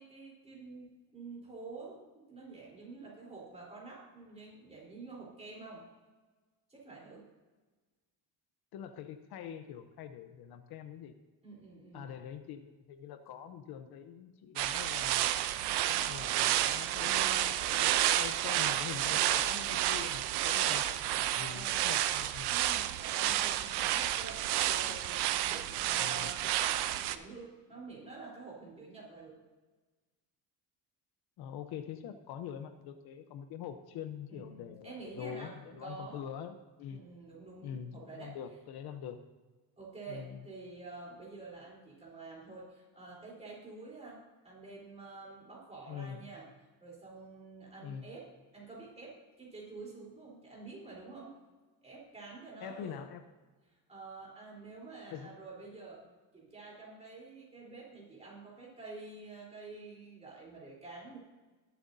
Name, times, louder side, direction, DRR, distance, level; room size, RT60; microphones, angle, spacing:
voice 1, 0.0-5.8 6.7-7.2 11.4-12.1 21.4-21.8 22.5-29.4 34.3-36.2 36.9-38.4 39.8-46.5 46.8-48.3 48.5-51.4 51.8-53.0 53.9-56.1 56.3-61.2, right 3 dB, 15° right, -4 dB, 3.8 m, -48 dB
voice 2, 8.7-11.1 11.9-15.3 15.9-22.5 25.9-26.3 31.4-37.0 37.6-39.2 40.1-40.5 45.9-46.2 47.8-48.1 52.6-53.2 55.1-55.4, left 8 dB, 65° left, 8 dB, 0.9 m, -44 dB
sound 1, 14.6-27.2, right 13 dB, 75° right, 0.7 m, -30 dB
20.5 x 7.8 x 2.7 m, 1.3 s
cardioid pair, 150°, 41 cm